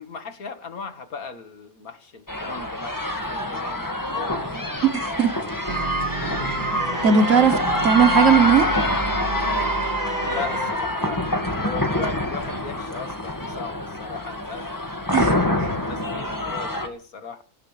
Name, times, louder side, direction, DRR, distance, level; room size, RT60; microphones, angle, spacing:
voice 1, 0.0-4.7 6.9-7.8 8.2-8.3 10.2-14.7 15.0-17.4, left 5 dB, 70° left, 2.1 m, -37 dB
sound 1, 2.3-16.9, left 1 dB, 15° left, 1.9 m, -26 dB
voice 2, 4.9-5.3 5.7-5.9 7.0-7.5 7.8-8.7 15.1-15.7, right 6 dB, 60° right, 1.4 m, -18 dB
sound 2, 5.7-10.7, right 4 dB, 30° right, 1.3 m, -30 dB
23.5 x 18.0 x 3.4 m
omnidirectional pair, 1.6 m